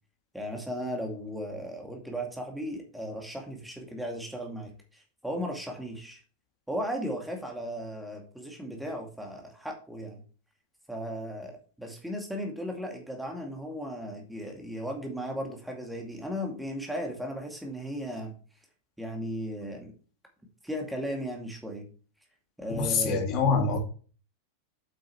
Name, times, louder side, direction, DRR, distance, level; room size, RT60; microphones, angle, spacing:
voice 1, 0.3-6.2 6.7-10.2 10.9-18.3 19.0-19.9 20.6-21.9 22.6-23.2, equal, ahead, 2.3 m, -36 dB
voice 2, 22.7-23.8, left 5 dB, 35° left, 2.4 m, -25 dB
8.8 x 7.9 x 3.1 m
figure-of-eight pair, 90°, 0 cm